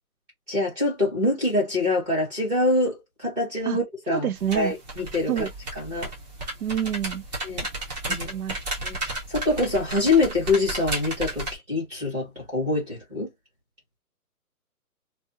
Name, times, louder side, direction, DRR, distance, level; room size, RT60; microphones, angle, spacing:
voice 1, 0.5-4.3 4.5-5.3 5.7-6.1 7.4-7.6 8.1-8.3 8.8-13.3, left 2 dB, 5° right, 0.9 m, -25 dB
voice 2, 4.1-4.7 5.3-5.5 6.6-7.2 8.2-8.6, right 9 dB, 70° right, 0.6 m, -27 dB
sound 1, 4.4-11.5, right 2 dB, 25° right, 1.2 m, -33 dB
3.3 x 2.6 x 2.7 m
hypercardioid pair, 165°, 46 cm